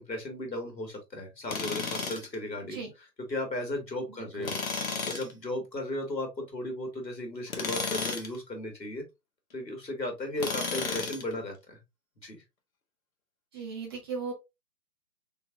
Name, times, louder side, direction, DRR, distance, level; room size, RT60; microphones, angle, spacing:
voice 1, 0.0-2.8 3.2-9.0 9.5-11.8 12.2-12.4, left 1 dB, 85° left, 2.0 m, -36 dB
Tools, 1.5-2.3 4.4-5.3 7.5-8.4 10.4-11.3, left 4 dB, 55° left, 1.2 m, -33 dB
voice 2, 13.5-14.3, right 5 dB, 15° right, 1.0 m, -36 dB
4.1 x 3.9 x 2.6 m
figure-of-eight pair, 140°, 50 cm